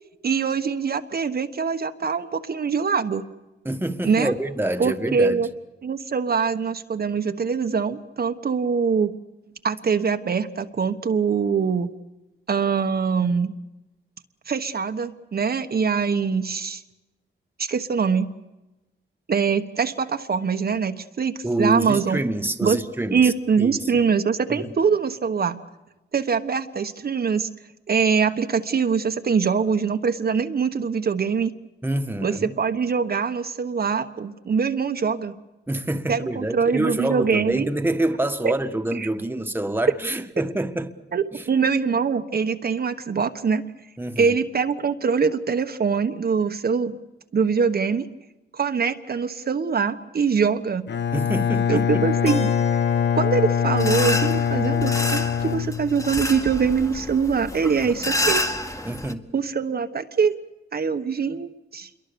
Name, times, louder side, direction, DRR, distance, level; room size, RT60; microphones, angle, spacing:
voice 1, 0.2-3.2 4.0-4.3 4.8-5.5 5.8-9.1 9.6-11.9 12.5-13.5 14.5-16.8 17.6-18.3 19.3-22.2 22.6-22.8 23.1-25.6 26.1-27.5 27.9-31.5 32.2-35.3 36.1-37.7 38.4-38.5 38.9-39.1 41.1-43.6 44.2-47.0 47.3-48.1 48.5-50.8 51.7-52.5 53.1-58.4 59.3-60.4 60.7-61.9, right 5 dB, 50° right, 1.3 m, -23 dB
voice 2, 3.6-5.4 21.4-24.0 24.5-24.7 31.8-32.6 35.7-40.9 41.3-41.5 44.0-44.3 51.1-52.0 58.8-59.3, right 1 dB, 10° right, 1.6 m, -27 dB
Bowed string instrument, 50.9-56.4, left 8 dB, 65° left, 1.0 m, -23 dB
Keyboard (musical), 52.3-56.1, left 3 dB, 30° left, 2.5 m, -40 dB
sound 1, 53.8-59.1, left 1 dB, 15° left, 1.8 m, -29 dB
28.0 x 23.0 x 7.0 m
wide cardioid pair, 110°, 20 cm